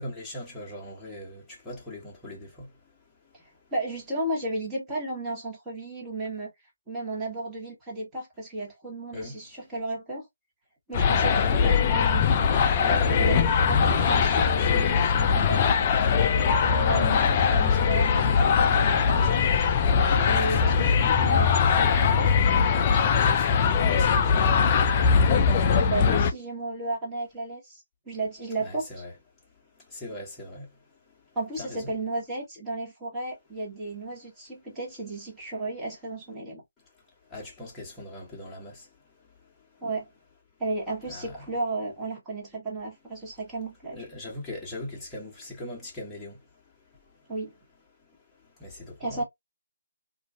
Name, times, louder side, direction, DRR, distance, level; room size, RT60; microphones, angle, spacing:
voice 1, 0.0-3.4 9.1-9.4 19.7-19.8 20.0-21.2 23.0-25.9 28.6-29.1 29.6-31.9 36.9-39.8 41.1-41.5 43.9-47.3 48.0-49.2, left 1 dB, 10° left, 1.2 m, -42 dB
voice 2, 3.7-6.5 6.9-10.3 10.9-15.8 16.6-19.4 20.3-21.5 22.1-22.3 25.8-28.9 31.3-36.6 39.8-40.1 40.6-44.0 47.3-47.5 49.0-49.2, right 2 dB, 10° right, 1.2 m, -34 dB
sound 1, 10.9-26.3, left 6 dB, 30° left, 0.3 m, -21 dB
2.5 x 2.5 x 2.4 m
figure-of-eight pair, 145°, 0 cm